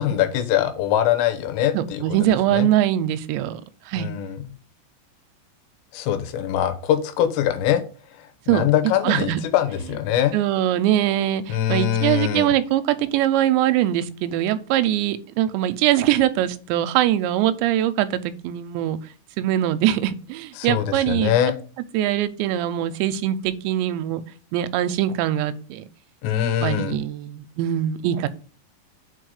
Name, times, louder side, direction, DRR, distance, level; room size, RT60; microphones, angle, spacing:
voice 1, 0.0-2.0 2.5-2.7 4.0-4.4 5.9-7.8 8.2-10.3 11.5-12.5 20.6-21.5 26.2-27.0, left 10 dB, 80° left, 9 dB, 3.0 m, -23 dB
voice 2, 1.7-3.6 3.9-4.1 8.5-8.6 9.0-9.4 10.3-19.0 19.4-21.3 21.9-24.2 24.5-25.8 26.6-28.3, right 12 dB, 85° right, 11 dB, 2.7 m, -22 dB
6.3 x 4.6 x 6.4 m, 0.38 s
omnidirectional pair, 5.3 m